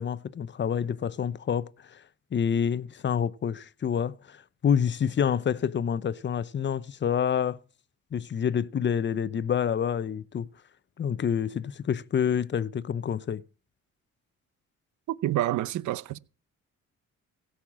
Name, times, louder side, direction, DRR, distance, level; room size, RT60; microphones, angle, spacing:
voice 1, 0.0-2.0 2.3-7.6 8.1-10.5 11.0-13.4, left 8 dB, 40° left, 0.7 m, -28 dB
voice 2, 15.1-16.2, right 14 dB, 75° right, 0.8 m, -28 dB
16.5 x 5.8 x 7.4 m
cardioid pair, 90°, 30 cm